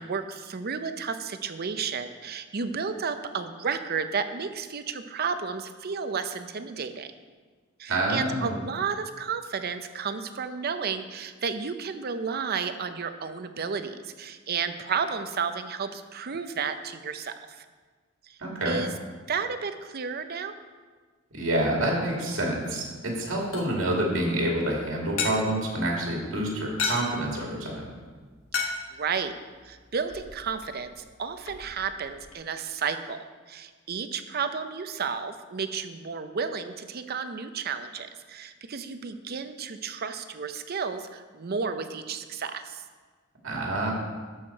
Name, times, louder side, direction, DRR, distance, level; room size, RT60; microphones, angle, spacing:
voice 1, 0.0-7.1 7.8-17.6 18.3-18.4 18.7-18.9 19.3-20.5 28.6-29.3 29.6-33.2 33.5-42.8, right 5 dB, 50° right, 9 dB, 0.6 m, -32 dB
voice 2, 7.9-8.6 18.4-18.8 21.3-27.8 43.4-43.9, right 1 dB, 80° right, -2 dB, 2.5 m, -27 dB
sound 1, 23.0-32.4, left 4 dB, 85° left, 1.2 m, -37 dB
13.0 x 5.8 x 4.5 m, 1.5 s
head